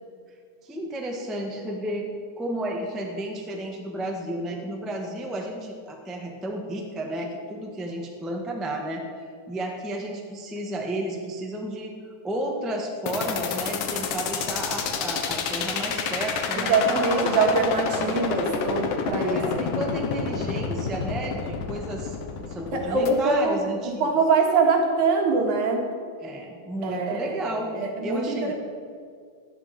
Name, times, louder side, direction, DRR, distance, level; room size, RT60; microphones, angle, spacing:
voice 1, 0.6-12.0 12.2-17.6 19.2-22.2 22.5-24.1 26.2-27.7 28.0-28.5, right 1 dB, ahead, 1 dB, 0.5 m, -32 dB
sound 1, 13.1-23.1, left 6 dB, 80° left, 2.7 m, -28 dB
voice 2, 16.6-19.7 22.7-23.6 24.0-25.9 26.8-27.5 27.7-28.5, right 4 dB, 70° right, 2 dB, 3.1 m, -23 dB
11.5 x 9.8 x 8.9 m, 2.1 s
omnidirectional pair, 3.6 m